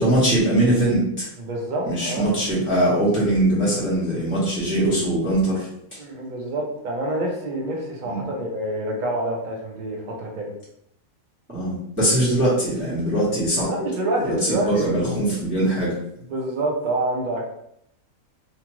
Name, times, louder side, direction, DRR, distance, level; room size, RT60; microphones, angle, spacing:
voice 1, 0.0-1.3 1.8-6.0 8.0-8.3 11.5-13.7 14.2-16.0, right 1 dB, 10° right, -9 dB, 0.9 m, -21 dB
voice 2, 1.4-2.5 6.0-10.5 13.7-15.1 16.3-17.5, right 1 dB, 45° right, -1 dB, 0.7 m, -27 dB
2.8 x 2.4 x 3.0 m, 0.74 s
omnidirectional pair, 1.5 m